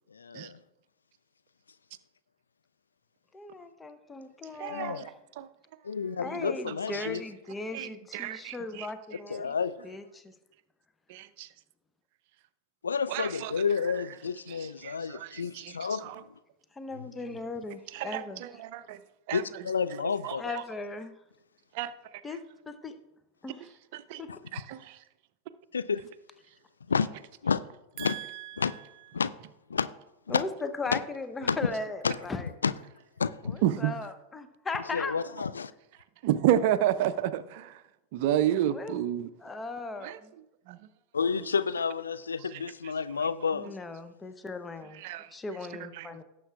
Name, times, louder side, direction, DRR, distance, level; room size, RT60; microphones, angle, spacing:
voice 1, 0.1-0.6 4.6-5.1 5.8-7.2 9.3-9.9 12.8-16.0 16.9-17.1 19.3-20.4 24.3-24.4 25.7-26.0 26.9-27.1 27.4-27.6 28.0-28.2 28.6-28.7 29.1-29.3 29.7-29.9 30.3-30.4 30.9-31.0 31.4-31.6 32.0-32.2 32.6-32.7 33.2-33.6 34.9-35.7 41.1-43.7, left 6 dB, 75° left, 0.3 m, -30 dB
voice 2, 3.3-5.0 6.2-9.5 9.8-10.3 16.8-18.4 20.4-21.1 22.2-23.0 23.4-23.7 24.2-24.3 30.3-32.5 33.4-35.2 38.5-39.0 39.4-40.3 43.5-45.0 45.3-46.2, left 3 dB, 15° left, 0.8 m, -38 dB
voice 3, 4.6-5.5 6.2-7.1 7.7-8.9 9.1-9.5 11.1-11.5 13.1-14.1 14.5-16.2 17.9-19.0 19.3-20.6 21.7-21.9 22.3-22.4 23.6-24.2 24.5-25.0 28.0-29.1 33.6-34.0 35.3-35.5 36.2-37.8 38.1-39.3 40.0-40.2 40.7-40.9 42.4-43.3 44.9-46.2, right 11 dB, 50° right, 0.5 m, -32 dB
18.0 x 7.6 x 2.4 m
figure-of-eight pair, 90°, 0 cm